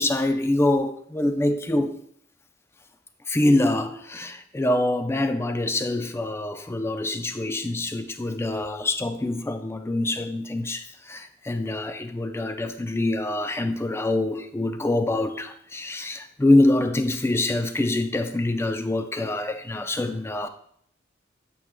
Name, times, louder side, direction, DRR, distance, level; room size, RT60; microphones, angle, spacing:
voice 1, 0.0-2.0 3.3-20.5, left 2 dB, 15° left, 8 dB, 0.4 m, -25 dB
8.4 x 6.0 x 2.2 m, 0.66 s
head